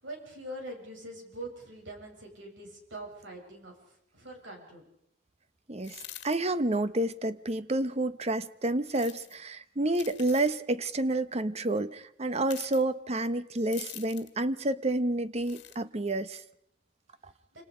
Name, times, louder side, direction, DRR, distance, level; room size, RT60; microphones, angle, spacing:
voice 1, 0.0-4.8, right 1 dB, 80° right, 1 dB, 7.8 m, -43 dB
voice 2, 5.7-16.4 17.2-17.3, right 2 dB, 35° right, 13 dB, 0.9 m, -29 dB
sound 1, 5.8-6.4 8.8-9.4 9.9-10.5 12.4-12.8 13.7-14.4 15.4-15.8, left 13 dB, 65° left, 2.1 m, -45 dB
28.0 x 26.5 x 5.1 m, 0.75 s
head